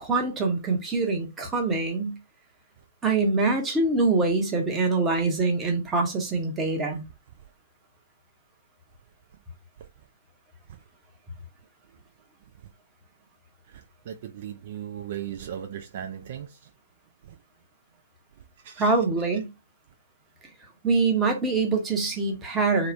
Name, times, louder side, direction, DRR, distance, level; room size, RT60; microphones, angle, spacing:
voice 1, 0.0-2.2 3.0-7.0 18.8-19.5 20.8-22.9, right 3 dB, 15° right, 0.8 m, -24 dB
voice 2, 14.1-16.6 18.6-18.9, right 10 dB, 50° right, 0.3 m, -37 dB
2.9 x 2.1 x 2.4 m
hypercardioid pair, 130°, 0 cm